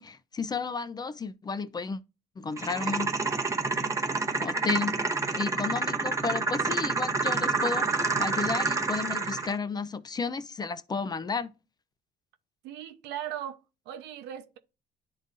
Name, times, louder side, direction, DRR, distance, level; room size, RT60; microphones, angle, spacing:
voice 1, 0.0-2.0 2.4-3.1 4.4-5.0 5.3-11.5, left 4 dB, 25° left, 0.5 m, -32 dB
sound 1, 2.6-9.6, right 4 dB, 20° right, 0.9 m, -28 dB
voice 2, 12.6-14.6, right 11 dB, 90° right, 0.8 m, -38 dB
10.5 x 3.8 x 2.6 m
cardioid pair, 110°, 17 cm